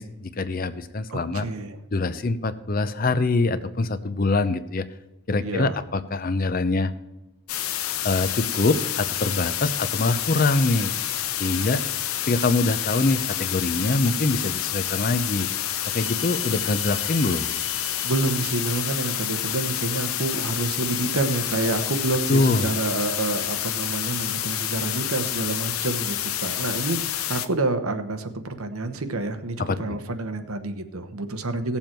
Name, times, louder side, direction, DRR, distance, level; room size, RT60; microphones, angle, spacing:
voice 1, 0.0-1.5 1.9-4.9 5.3-6.9 8.0-10.9 11.4-11.8 12.3-15.5 15.9-17.5 22.3-22.7 29.6-30.0, left 3 dB, 40° left, 12 dB, 0.6 m, -24 dB
voice 2, 1.1-1.8 5.4-5.8 18.0-31.8, right 2 dB, 85° right, 8 dB, 1.1 m, -28 dB
sound 1, 7.5-27.5, left 11 dB, 85° left, 0.7 m, -28 dB
sound 2, 15.9-19.3, left 6 dB, 65° left, 1.8 m, -39 dB
17.5 x 7.2 x 4.5 m, 0.99 s
head